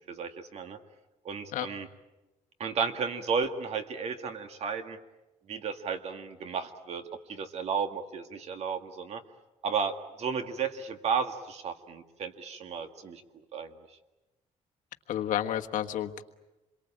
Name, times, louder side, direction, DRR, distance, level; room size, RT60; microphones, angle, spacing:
voice 1, 0.1-0.8 1.2-1.9 2.6-5.0 5.5-9.2 9.6-13.2 13.5-13.7, right 6 dB, 50° right, 8 dB, 1.9 m, -33 dB
voice 2, 15.1-16.2, left 11 dB, 70° left, 5 dB, 1.5 m, -30 dB
27.5 x 23.0 x 8.8 m, 1.1 s
cardioid pair, 160°, 14 cm